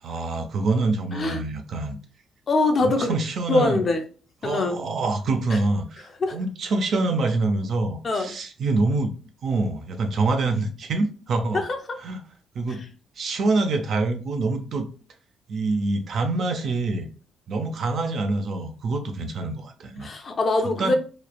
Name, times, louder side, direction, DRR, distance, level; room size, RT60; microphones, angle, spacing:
voice 1, 0.0-2.0 2.8-3.8 4.4-9.1 9.4-11.6 12.0-12.2 12.5-12.8 13.2-14.9 15.5-17.1 17.5-20.1 20.8-20.9, right 3 dB, 60° right, 5 dB, 0.5 m, -25 dB
voice 2, 2.5-3.2 3.5-4.0 4.4-4.8 5.5-5.6 6.2-6.4 8.0-8.3 11.5-11.8 20.0-20.9, left 2 dB, 45° left, 5 dB, 0.5 m, -23 dB
3.1 x 2.0 x 2.3 m, 0.38 s
cardioid pair, 90°, 0 cm